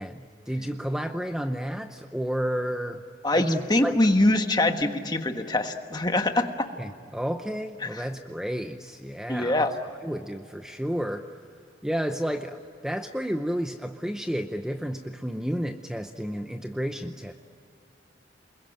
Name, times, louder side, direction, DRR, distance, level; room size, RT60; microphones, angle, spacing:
voice 1, 0.0-3.0 3.3-4.0 6.8-9.7 10.0-11.3 11.8-17.3, equal, 5° right, 6 dB, 0.7 m, -31 dB
voice 2, 3.2-6.7 9.3-9.7, left 1 dB, 20° left, 6 dB, 1.4 m, -23 dB
29.5 x 22.0 x 9.0 m, 2.4 s
head